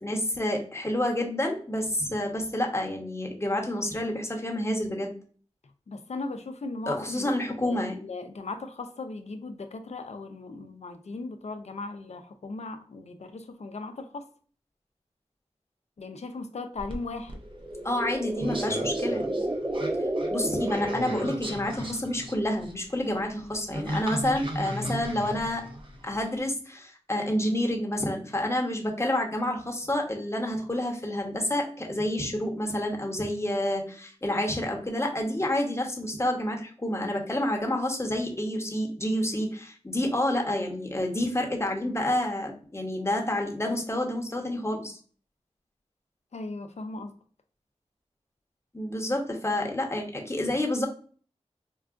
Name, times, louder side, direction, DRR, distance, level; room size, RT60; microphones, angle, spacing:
voice 1, 0.0-5.1 6.9-7.9 17.8-19.4 20.3-25.6 26.0-45.0 48.7-50.9, left 1 dB, 25° left, 1 dB, 0.9 m, -29 dB
voice 2, 5.9-14.3 16.0-17.3 46.3-47.2, left 3 dB, 70° left, 8 dB, 0.5 m, -38 dB
sound 1, 16.8-26.4, equal, 45° right, 0.8 m, -37 dB
sound 2, 17.4-21.8, right 1 dB, 20° right, 0.4 m, -31 dB
4.6 x 2.3 x 2.4 m, 0.43 s
wide cardioid pair, 50°, 12 cm